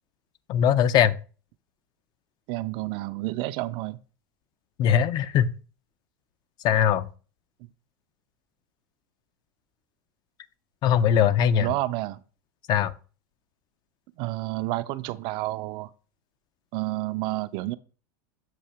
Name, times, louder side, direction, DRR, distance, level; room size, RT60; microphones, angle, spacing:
voice 1, 0.5-1.1 4.8-5.5 6.6-7.1 10.8-11.7 12.7-12.9, left 9 dB, 40° left, 0.5 m, -20 dB
voice 2, 2.5-4.0 11.6-12.2 14.2-15.9 16.7-17.8, right 18 dB, 50° right, 0.4 m, -30 dB
7.6 x 2.7 x 5.5 m
supercardioid pair, 120°, 11 cm